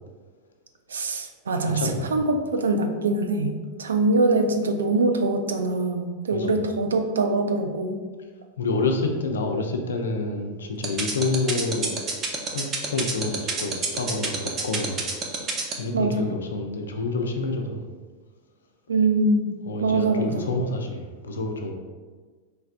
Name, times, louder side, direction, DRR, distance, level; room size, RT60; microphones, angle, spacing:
voice 1, 0.9-1.8 2.1-8.0 15.9-16.1 18.9-19.6 19.8-20.5, right 2 dB, 85° right, 6 dB, 0.4 m, -23 dB
voice 2, 1.7-2.3 6.3-6.6 8.6-11.9 12.3-15.0 15.3-15.5 15.8-17.9 19.7-21.7, left 3 dB, 85° left, 3 dB, 0.5 m, -28 dB
sound 1, 10.8-15.7, right 5 dB, 35° right, 0.7 m, -26 dB
4.3 x 3.3 x 2.5 m, 1.4 s
hypercardioid pair, 100°, 0 cm